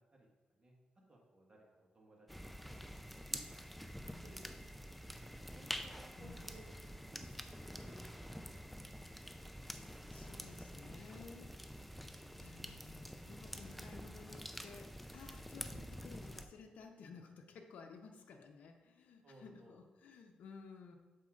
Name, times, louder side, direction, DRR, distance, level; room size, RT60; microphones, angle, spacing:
voice 1, 0.1-0.7 1.1-2.3 2.7-3.5 3.9-4.5 5.5-6.6 7.1-9.3 19.2-19.8, right 1 dB, 30° right, -2 dB, 1.6 m, -61 dB
sound 1, 2.3-16.5, equal, 5° left, 0.4 m, -48 dB
voice 2, 6.1-6.6 10.1-11.5 12.4-21.0, left 5 dB, 85° left, 4 dB, 0.6 m, -55 dB
7.4 x 4.2 x 3.8 m, 1.2 s
cardioid pair, 90°, 3 cm